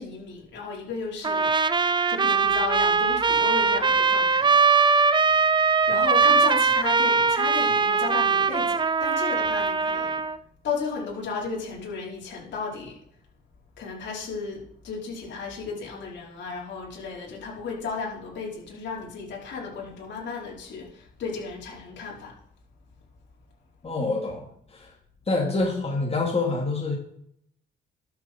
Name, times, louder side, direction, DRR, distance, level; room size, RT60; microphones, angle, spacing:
voice 1, 0.0-1.5 2.1-4.6 5.9-10.2 10.6-13.0 13.8-22.3, left 5 dB, 65° left, -3 dB, 4.8 m, -34 dB
Trumpet, 1.2-10.4, right 5 dB, 25° right, 0.5 m, -21 dB
voice 2, 23.8-24.9 25.3-27.0, left 3 dB, 30° left, -1 dB, 3.1 m, -26 dB
12.0 x 7.3 x 4.7 m, 0.71 s
cardioid pair, 90°, 20 cm